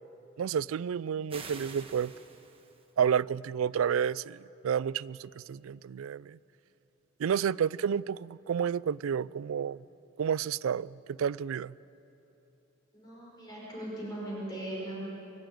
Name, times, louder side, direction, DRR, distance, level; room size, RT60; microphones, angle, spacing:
voice 1, 0.4-2.1 3.0-6.4 7.2-9.8 10.2-11.7, right 7 dB, 75° right, 0.4 m, -30 dB
sound 1, 1.3-2.9, right 4 dB, 25° right, 1.3 m, -47 dB
voice 2, 12.9-15.0, right 1 dB, 20° left, 5.3 m, -39 dB
24.0 x 12.0 x 9.2 m
head